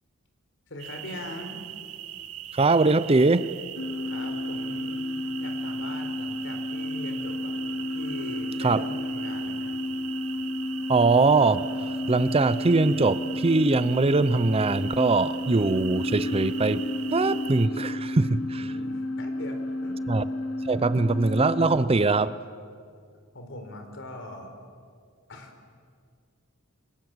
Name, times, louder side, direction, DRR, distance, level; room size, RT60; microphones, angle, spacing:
voice 1, 0.7-1.6 4.0-5.0 5.4-7.5 7.9-9.8 18.5-20.0 23.3-24.5 25.3-25.5, left 1 dB, 60° left, 5 dB, 4.5 m, -41 dB
sound 1, 0.8-17.7, right 11 dB, 80° right, 1.3 m, -41 dB
voice 2, 2.5-3.5 8.6-8.8 10.9-11.6 12.1-16.8 17.1-18.7 20.1-20.2 20.6-22.4, right 3 dB, 25° right, 15 dB, 0.6 m, -22 dB
sound 2, 3.8-21.8, left 1 dB, 80° left, 2.8 m, -32 dB
29.0 x 25.5 x 7.9 m, 2.2 s
head